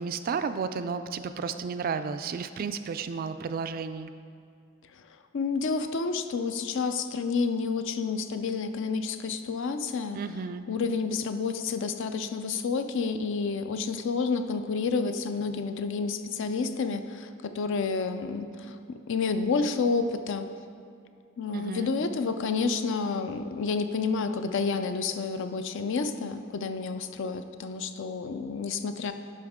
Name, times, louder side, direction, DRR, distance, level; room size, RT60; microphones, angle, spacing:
voice 1, 0.0-4.1 10.1-10.7 21.5-21.9, right 5 dB, 45° right, 11 dB, 0.3 m, -32 dB
voice 2, 5.3-10.2 10.7-20.5 21.4-29.1, left 4 dB, 60° left, 9 dB, 0.4 m, -29 dB
11.0 x 5.3 x 3.6 m, 2.4 s
head